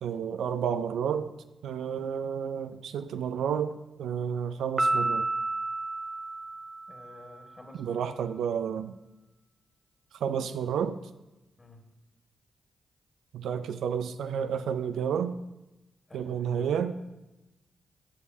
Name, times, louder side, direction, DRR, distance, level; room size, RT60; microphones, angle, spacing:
voice 1, 0.0-1.3 1.6-5.3 7.7-8.9 10.2-11.0 13.3-15.4 16.1-17.0, right 7 dB, 80° right, 10 dB, 0.3 m, -31 dB
Piano, 4.8-7.3, right 2 dB, 35° right, 0.7 m, -30 dB
voice 2, 6.9-8.1 11.6-11.8 16.1-16.7, left 2 dB, 35° left, 1 dB, 1.9 m, -50 dB
18.0 x 6.3 x 2.7 m, 0.99 s
supercardioid pair, 40°, 0 cm